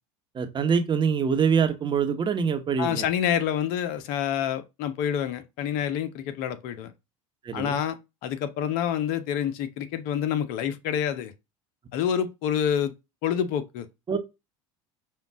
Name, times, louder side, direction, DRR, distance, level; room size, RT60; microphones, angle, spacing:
voice 1, 0.3-3.1 7.4-7.8 14.1-14.2, right 6 dB, 30° right, 1.0 m, -24 dB
voice 2, 2.8-6.9 7.5-8.0 8.2-11.3 11.9-12.9 13.2-13.9, left 9 dB, 60° left, 0.9 m, -27 dB
5.6 x 2.4 x 3.5 m
hypercardioid pair, 90°, 17 cm